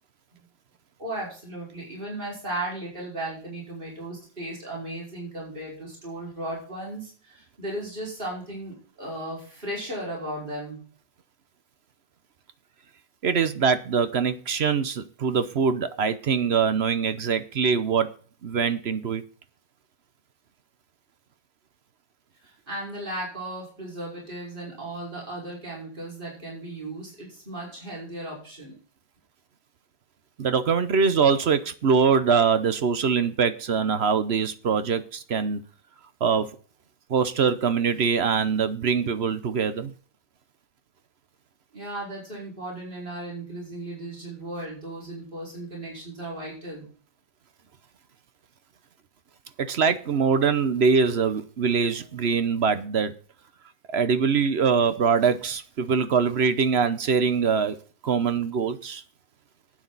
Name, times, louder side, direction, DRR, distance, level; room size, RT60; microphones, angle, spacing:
voice 1, 1.0-10.8 22.4-28.7 41.7-46.9, right 1 dB, 30° right, -3 dB, 5.3 m, -36 dB
voice 2, 13.2-18.1 18.4-19.2 30.4-35.6 36.2-36.5 37.1-39.9 49.6-53.1 53.9-57.8 58.0-59.0, right 6 dB, 50° right, 12 dB, 0.8 m, -23 dB
11.5 x 9.2 x 4.0 m, 0.40 s
omnidirectional pair, 1.9 m